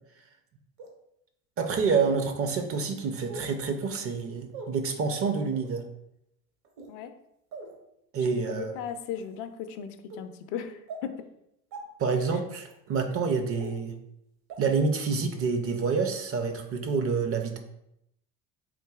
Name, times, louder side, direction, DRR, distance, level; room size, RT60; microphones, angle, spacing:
sound 1, 0.8-0.9 1.8-1.9 3.3-3.5 4.5-4.7 5.5-5.7 6.6-6.9 7.5-7.7 8.5-8.6 9.2-9.4 10.1-10.2 10.9-11.0 11.7-11.8 12.6-12.7 13.6-13.7 14.5-14.6 15.1-15.2, right 3 dB, 60° right, 0.9 m, -41 dB
voice 1, 1.6-5.8 8.1-8.7 12.0-13.9 14.6-17.6, right 5 dB, 35° right, 6 dB, 0.5 m, -28 dB
voice 2, 8.5-11.2, left 8 dB, 65° left, 9 dB, 0.5 m, -37 dB
3.8 x 2.6 x 2.3 m, 0.80 s
hypercardioid pair, 75°, 43 cm